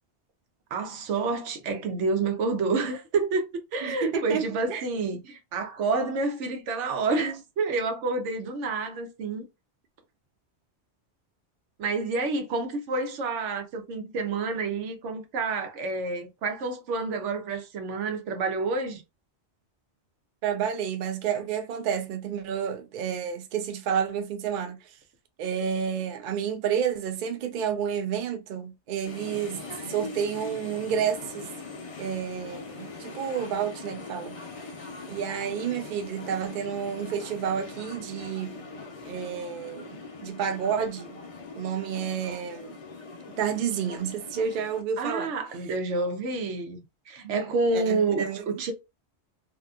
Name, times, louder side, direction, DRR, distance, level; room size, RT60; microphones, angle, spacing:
voice 1, 0.7-3.5 3.7-9.4 11.8-19.0 45.0-48.7, right 3 dB, 85° right, 1.0 m, -29 dB
voice 2, 3.8-4.8 20.4-25.0 25.4-29.6 29.9-31.5 32.0-34.4 35.1-38.6 39.1-41.2 41.6-42.8 43.4-45.3 47.2-47.3 47.7-48.4, right 8 dB, 55° right, 0.6 m, -30 dB
sound 1, 29.0-44.8, left 4 dB, 45° left, 0.5 m, -41 dB
2.7 x 2.5 x 2.3 m
omnidirectional pair, 1.2 m